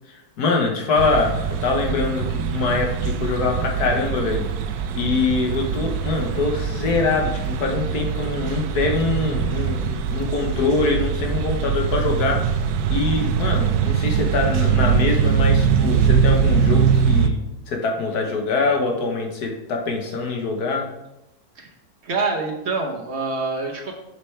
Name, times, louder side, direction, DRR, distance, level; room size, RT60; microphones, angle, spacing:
voice 1, 0.1-4.4 4.9-17.4 17.7-20.9, left 3 dB, 80° left, 2 dB, 1.7 m, -24 dB
sound 1, 1.0-17.3, right 7 dB, 80° right, 1.1 m, -22 dB
voice 2, 22.0-23.9, right 3 dB, 50° right, 1 dB, 1.1 m, -26 dB
7.7 x 6.8 x 3.3 m, 0.93 s
omnidirectional pair, 1.6 m